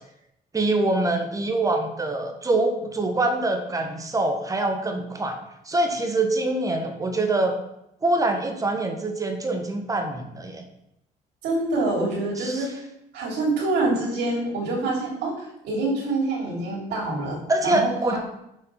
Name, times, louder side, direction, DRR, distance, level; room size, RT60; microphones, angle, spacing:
voice 1, 0.5-5.4 5.7-7.5 8.0-10.6 12.4-12.7 17.5-18.2, right 2 dB, 20° right, 5 dB, 1.3 m, -24 dB
voice 2, 11.4-12.8 13.1-18.2, right 2 dB, 85° right, -3 dB, 3.0 m, -26 dB
6.8 x 5.2 x 5.5 m, 0.83 s
cardioid pair, 110°, 17 cm